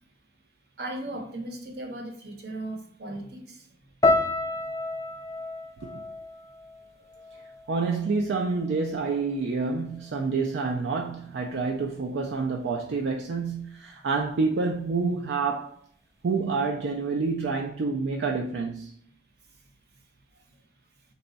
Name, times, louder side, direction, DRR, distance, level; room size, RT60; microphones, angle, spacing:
voice 1, 0.8-3.8 19.5-19.6 20.3-20.6, right 1 dB, 60° right, 0.9 m, -37 dB
sound 1, 4.0-8.2 8.5-9.3 9.9-10.1, left 2 dB, 15° left, 0.3 m, -30 dB
voice 2, 7.7-15.8 16.2-18.9, right 4 dB, 75° right, 0.4 m, -28 dB
4.0 x 2.3 x 3.9 m
head